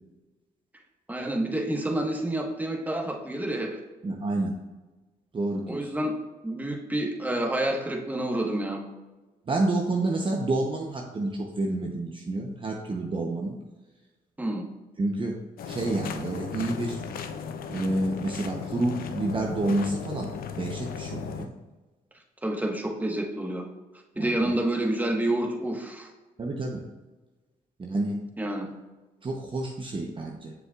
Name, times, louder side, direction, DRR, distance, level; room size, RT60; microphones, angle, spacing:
voice 1, 1.1-3.8 5.7-6.1 6.4-8.8 14.4-14.6 22.4-23.6 24.2-26.1 28.4-28.7, right 1 dB, 10° right, 1 dB, 1.3 m, -28 dB
voice 2, 4.0-4.6 5.3-5.9 9.5-13.6 15.0-15.4 15.7-17.0 17.7-20.3 20.6-21.5 24.2-24.5 26.4-26.8 27.8-28.2 29.2-30.5, right 2 dB, 35° right, 1 dB, 0.8 m, -29 dB
sound 1, 15.6-21.5, left 6 dB, 70° left, 0.6 m, -36 dB
7.1 x 6.5 x 2.4 m, 1.2 s
supercardioid pair, 70°, 16 cm